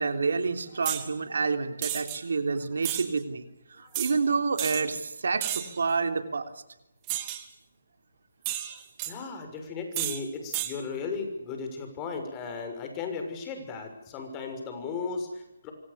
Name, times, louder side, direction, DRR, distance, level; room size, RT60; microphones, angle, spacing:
voice 1, 0.0-6.5, right 4 dB, 75° right, 8 dB, 3.2 m, -28 dB
sound 1, 0.8-1.1 1.8-2.2 2.8-3.1 3.9-4.1 4.6-4.8 5.4-5.8 7.1-7.4 8.4-9.1 9.9-10.2 10.5-10.7, right 14 dB, 25° right, 2.8 m, -32 dB
voice 2, 9.1-15.7, left 4 dB, 20° left, 5 dB, 6.4 m, -36 dB
26.0 x 26.0 x 7.0 m, 0.87 s
hypercardioid pair, 155°, 0 cm